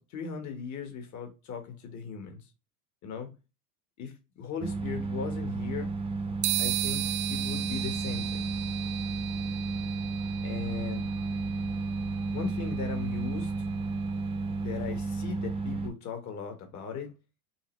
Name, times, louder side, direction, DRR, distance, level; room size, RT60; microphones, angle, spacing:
voice 1, 0.0-2.4 3.0-3.3 4.0-5.9 6.6-7.0 7.3-8.5 10.4-11.1 12.3-13.5 14.6-17.1, left 6 dB, 40° left, 1.3 m, -38 dB
sound 1, 4.6-15.9, right 3 dB, 10° right, 0.9 m, -32 dB
sound 2, 6.4-14.1, right 17 dB, 65° right, 0.6 m, -36 dB
5.6 x 2.2 x 3.1 m
supercardioid pair, 105°, 46 cm